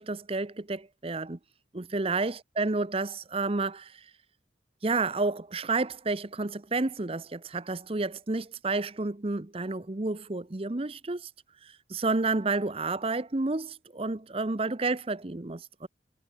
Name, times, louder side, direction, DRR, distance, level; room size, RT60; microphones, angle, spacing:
voice 1, 0.0-1.4 1.7-4.0 4.8-11.3 11.6-15.9, right 3 dB, 30° right, 0.8 m, -30 dB
head